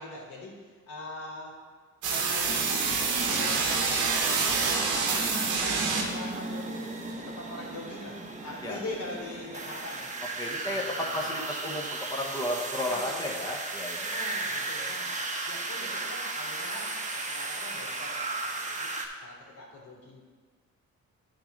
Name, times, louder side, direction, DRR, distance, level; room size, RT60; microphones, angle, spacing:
voice 1, 0.0-1.5 2.0-4.3 4.6-8.2 8.4-10.1 10.4-11.4 12.7-13.3 13.9-16.9 17.3-18.9 19.2-20.2, left 2 dB, 75° left, -4 dB, 2.7 m, -42 dB
sound 1, 2.0-6.3, right 4 dB, 90° right, 1.3 m, -27 dB
sound 2, 2.5-19.1, right 2 dB, 25° right, 1.0 m, -36 dB
voice 2, 10.4-14.2, left 1 dB, 15° left, -1 dB, 1.1 m, -33 dB
10.5 x 3.8 x 5.3 m, 1.5 s
cardioid pair, 90°, 30 cm